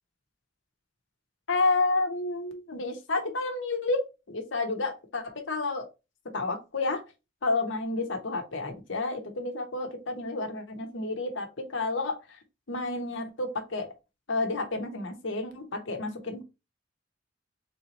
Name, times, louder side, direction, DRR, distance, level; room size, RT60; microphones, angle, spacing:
voice 1, 1.5-4.0 4.3-5.9 6.3-7.0 7.4-12.2 12.7-13.9 14.3-16.4, left 3 dB, 80° left, 4 dB, 1.0 m, -30 dB
3.5 x 2.8 x 4.1 m, 0.27 s
head